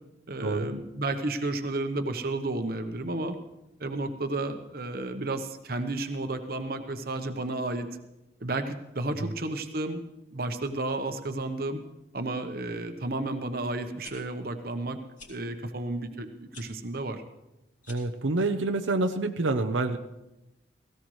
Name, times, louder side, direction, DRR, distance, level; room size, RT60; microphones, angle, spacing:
voice 1, 0.3-3.4 3.8-7.9 8.4-10.0 10.3-11.8 12.1-15.0 15.3-17.2, right 2 dB, 50° right, 7 dB, 1.0 m, -32 dB
sound 1, 14.0-14.1 15.1-15.3 16.5-16.7 17.8-18.2, left 3 dB, 45° left, 3.3 m, -47 dB
voice 2, 17.9-20.0, right 2 dB, 90° right, 5 dB, 0.8 m, -27 dB
17.5 x 16.0 x 3.2 m, 0.94 s
head